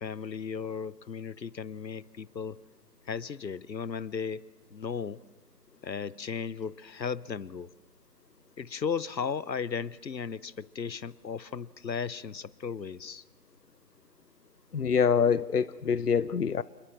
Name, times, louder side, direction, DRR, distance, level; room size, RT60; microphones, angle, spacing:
voice 1, 0.0-2.6 3.1-5.2 5.8-7.7 8.6-13.2, left 6 dB, 85° left, 1.0 m, -35 dB
voice 2, 14.7-16.6, left 6 dB, 65° left, 0.8 m, -25 dB
28.5 x 21.0 x 7.4 m
figure-of-eight pair, 175°, 50 cm